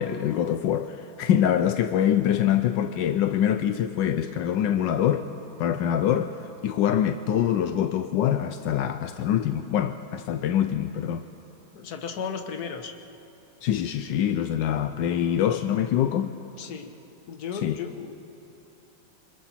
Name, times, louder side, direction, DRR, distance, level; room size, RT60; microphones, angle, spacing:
voice 1, 0.0-5.3 5.6-11.3 13.6-16.4 17.6-17.8, left 10 dB, 80° left, 1.3 m, -24 dB
voice 2, 11.7-13.0 16.6-16.9 17.3-18.1, left 6 dB, 60° left, 1.7 m, -35 dB
28.0 x 25.5 x 4.4 m
omnidirectional pair, 2.0 m